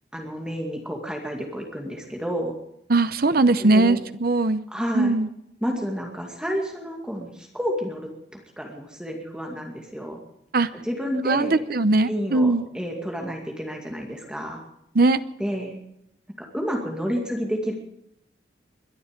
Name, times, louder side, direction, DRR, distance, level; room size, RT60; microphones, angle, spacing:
voice 1, 0.1-2.5 3.6-4.0 4.7-5.2 5.6-8.1 8.6-10.2 10.8-11.6 12.1-14.6 15.4-15.8 16.5-17.7, equal, 5° right, 1 dB, 2.3 m, -30 dB
voice 2, 2.9-4.6 4.9-5.3 10.5-10.7 11.3-12.7 14.9-15.2, right 2 dB, 55° right, 13 dB, 0.8 m, -20 dB
22.0 x 11.5 x 5.2 m, 0.76 s
head